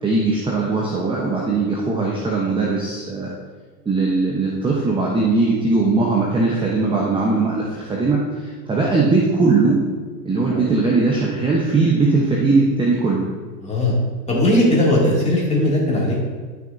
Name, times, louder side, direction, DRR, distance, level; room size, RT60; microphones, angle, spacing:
voice 1, 0.0-3.3 3.8-9.8 10.2-13.2, right 3 dB, 10° right, -3 dB, 1.0 m, -19 dB
voice 2, 13.6-13.9 14.3-16.2, left 1 dB, 15° left, -4 dB, 2.5 m, -18 dB
11.0 x 6.4 x 2.7 m, 1.5 s
hypercardioid pair, 115°, 48 cm